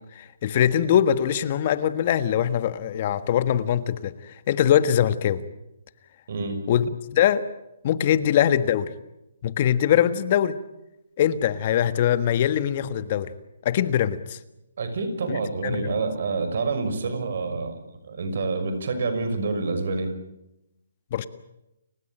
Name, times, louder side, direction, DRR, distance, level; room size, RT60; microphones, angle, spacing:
voice 1, 0.1-4.1 4.5-5.4 6.7-7.4 7.8-8.9 9.4-10.6 11.2-13.3 13.6-14.4 15.3-15.4 15.6-15.9 21.1-21.3, left 10 dB, 40° left, 13 dB, 1.5 m, -22 dB
voice 2, 6.3-6.6 14.8-17.7 18.0-20.1, right 3 dB, 60° right, 8 dB, 6.0 m, -27 dB
30.0 x 16.0 x 8.9 m, 0.88 s
hypercardioid pair, 150°, 0 cm